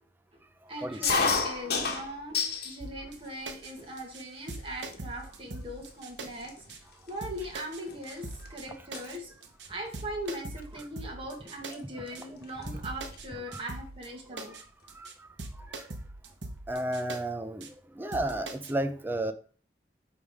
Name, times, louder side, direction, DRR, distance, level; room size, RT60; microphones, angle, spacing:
voice 1, 0.7-9.4 9.7-14.6, right 1 dB, 30° right, 2.0 m, -40 dB
sound 1, 1.0-2.8 3.2-3.8 4.5-4.6 4.9-5.2 5.9-6.0 6.2-8.5 8.7-9.1 10.4-10.6 11.7-11.8 12.1-12.2 12.4-13.3, left 5 dB, 60° left, 1.4 m, -31 dB
sound 2, 2.8-3.2 3.5-3.7 4.0-4.2 4.5-6.3 6.7-6.8 7.2-7.8 8.1-8.7 8.9-9.2 9.4-9.7 9.9-11.7 12.2-12.3 12.7-13.3 13.5-14.1 14.4-14.6 14.9-15.1 15.4-17.2 17.6-17.7 18.1-18.7, right 2 dB, 85° right, 1.1 m, -41 dB
voice 2, 14.9-15.3 15.5-15.9 16.7-17.7 17.9-19.3, right 1 dB, 10° right, 0.6 m, -32 dB
9.2 x 3.5 x 4.9 m
head